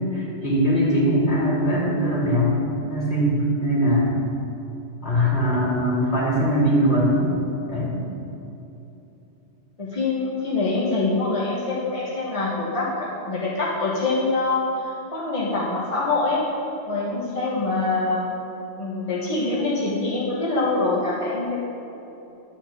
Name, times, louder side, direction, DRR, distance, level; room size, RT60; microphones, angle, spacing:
voice 1, 0.1-2.5 2.9-4.1 5.0-7.3 7.7-7.9, equal, 65° left, -7 dB, 3.1 m, -21 dB
voice 2, 9.8-16.4 16.9-18.2 18.8-21.6, left 3 dB, 30° left, -6 dB, 1.5 m, -24 dB
11.5 x 5.1 x 7.2 m, 2.9 s
omnidirectional pair, 1.2 m